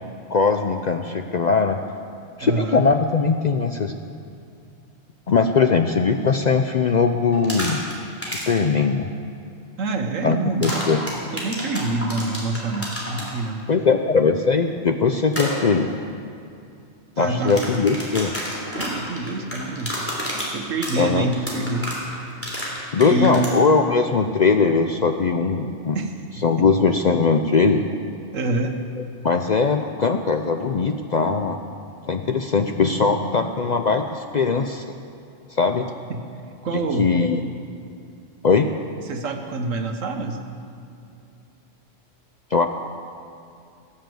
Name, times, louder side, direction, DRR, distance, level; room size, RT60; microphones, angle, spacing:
voice 1, 0.3-1.8 2.4-3.9 5.3-7.8 8.2-9.1 10.2-10.4 10.6-11.0 13.7-15.9 17.2-18.3 21.0-21.3 22.9-26.0 26.4-27.8 29.2-31.7 32.0-34.8 35.5-35.9 36.7-37.4 38.4-38.7 42.5-42.7, left 4 dB, 55° left, 6 dB, 0.5 m, -20 dB
voice 2, 2.4-2.8 9.8-10.7 11.3-13.7 17.2-17.6 18.7-22.0 23.0-23.5 25.9-26.7 28.3-28.8 36.1-36.2 36.6-37.1 39.1-40.4, right 2 dB, 90° right, 5 dB, 1.5 m, -26 dB
sound 1, 7.3-7.9 8.2-8.6 10.6-13.3 15.3-15.5 17.3-23.5, equal, 10° left, 3.2 m, -30 dB
17.5 x 7.5 x 7.7 m, 2.5 s
omnidirectional pair, 1.3 m